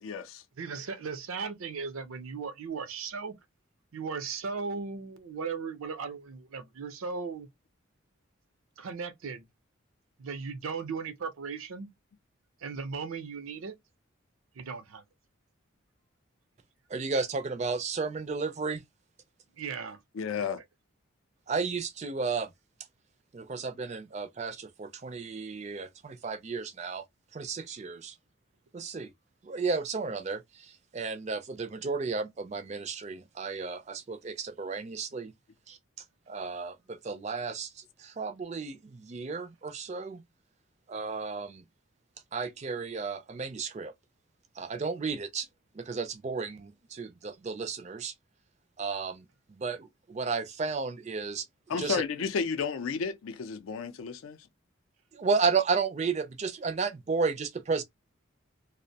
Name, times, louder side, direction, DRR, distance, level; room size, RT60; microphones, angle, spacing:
voice 1, 0.0-0.4 20.2-20.6 51.7-54.4, left 5 dB, 80° left, 0.4 m, -32 dB
voice 2, 0.6-3.4 3.9-7.5 8.8-9.5 10.2-11.9 12.6-13.8 14.5-15.0 19.6-20.0 20.4-20.6, right 5 dB, 85° right, 0.5 m, -37 dB
voice 3, 16.9-18.8 21.5-22.5 23.3-27.0 27.3-28.1 28.7-29.1 29.4-35.3 35.7-35.8 36.3-40.2 40.9-41.6 42.3-43.9 44.6-45.5 45.7-48.1 48.8-51.5 51.8-52.0 55.1-57.8, right 4 dB, 35° right, 0.3 m, -33 dB
2.5 x 2.1 x 2.6 m
head